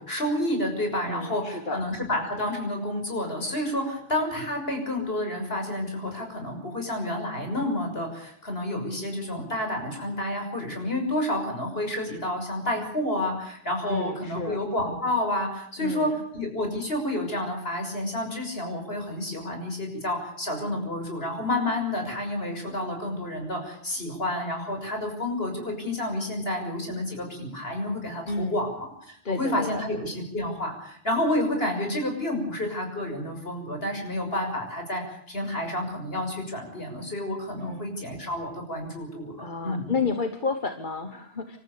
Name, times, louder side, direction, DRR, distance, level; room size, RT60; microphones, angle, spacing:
voice 1, 0.0-39.9, left 1 dB, 65° left, 3 dB, 6.6 m, -30 dB
voice 2, 1.1-1.8 13.9-14.6 15.8-16.2 28.3-28.6 29.2-29.8 37.6-37.9 39.3-41.6, left 4 dB, 50° left, 7 dB, 1.5 m, -31 dB
27.5 x 14.0 x 8.7 m, 0.65 s
omnidirectional pair, 1.1 m